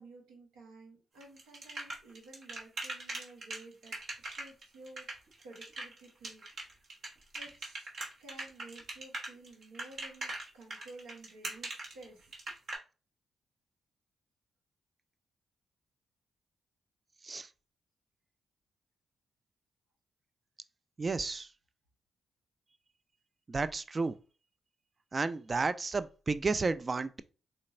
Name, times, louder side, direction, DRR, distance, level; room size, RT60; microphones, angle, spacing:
voice 1, 0.0-4.0 4.3-6.4 7.3-7.9 8.2-12.3, right 2 dB, 85° right, 0.8 m, -53 dB
sound 1, 1.2-12.8, right 2 dB, 60° right, 1.0 m, -41 dB
voice 2, 21.0-21.5 23.5-24.1 25.1-27.2, right 4 dB, 40° right, 0.3 m, -32 dB
3.9 x 2.2 x 2.5 m
hypercardioid pair, 45°, 0 cm